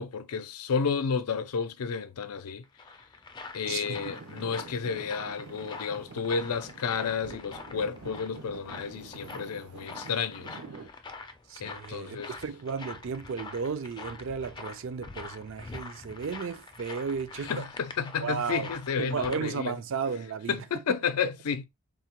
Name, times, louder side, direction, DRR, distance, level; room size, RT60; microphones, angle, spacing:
voice 1, 0.0-2.6 3.5-10.6 11.6-12.3 17.5-19.8 20.5-21.7, left 6 dB, 90° left, 0.4 m, -31 dB
sound 1, 2.6-19.4, left 3 dB, 20° left, 0.3 m, -45 dB
Traffic noise roadway noise / Engine, 3.6-10.9, right 3 dB, 85° right, 0.7 m, -47 dB
voice 2, 3.7-4.0 11.5-17.7 18.2-18.7 19.0-20.8, right 5 dB, 60° right, 0.4 m, -34 dB
3.7 x 2.1 x 2.9 m
head